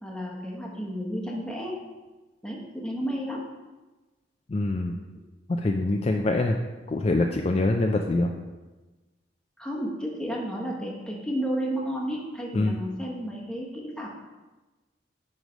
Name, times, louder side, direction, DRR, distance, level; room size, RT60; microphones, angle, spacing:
voice 1, 0.0-1.8 2.4-3.4 9.6-14.1, equal, 5° left, -2 dB, 1.0 m, -32 dB
voice 2, 4.5-5.0 5.6-6.6 6.9-8.3 12.5-12.7, left 2 dB, 35° left, 3 dB, 0.4 m, -24 dB
9.2 x 3.2 x 5.0 m, 1.2 s
head